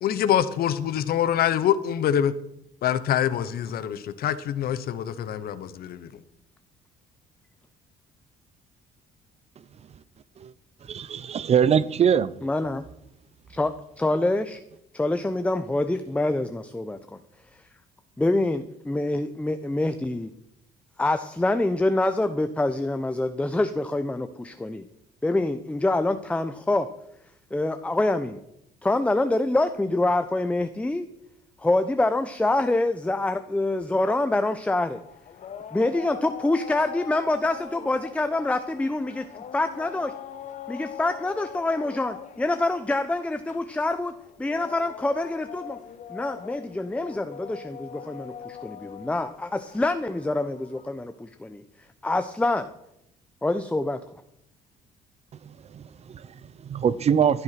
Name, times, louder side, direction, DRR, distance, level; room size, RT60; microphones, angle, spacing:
voice 1, 0.0-2.3 2.8-6.1, left 10 dB, 65° left, 1.1 m, -25 dB
voice 2, 10.8-12.3 55.3-57.4, right 7 dB, 40° right, 0.7 m, -24 dB
voice 3, 12.4-12.8 13.6-13.7 14.0-14.6 14.9-17.0 18.2-20.3 21.0-24.8 25.2-26.9 27.5-28.4 28.8-31.1 31.6-35.0 35.7-40.1 40.7-45.8 46.1-51.6 52.0-52.7 53.4-54.0, left 2 dB, 5° left, 0.8 m, -26 dB
sound 1, 34.7-51.0, left 8 dB, 45° left, 1.0 m, -42 dB
15.0 x 9.6 x 5.9 m
cardioid pair, 110°, 17 cm